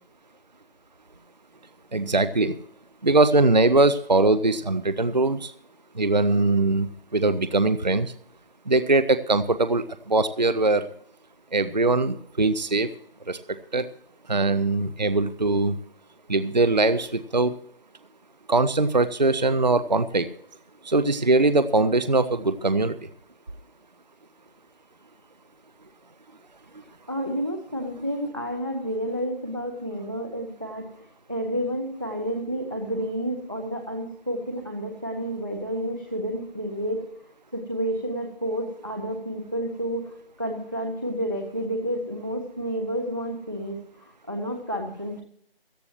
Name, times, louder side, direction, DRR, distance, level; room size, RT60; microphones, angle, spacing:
voice 1, 1.9-2.6 3.0-5.5 6.0-6.9 7.1-8.1 8.7-10.9 11.5-12.9 13.3-13.4 13.7-13.9 14.3-15.8 16.3-17.5 18.5-20.3 20.8-23.0, right 2 dB, 45° right, 13 dB, 0.6 m, -21 dB
voice 2, 27.1-37.0 37.5-40.1 40.4-45.2, equal, 20° right, 3 dB, 0.9 m, -30 dB
17.0 x 13.5 x 3.0 m, 0.69 s
figure-of-eight pair, 175°, 30 cm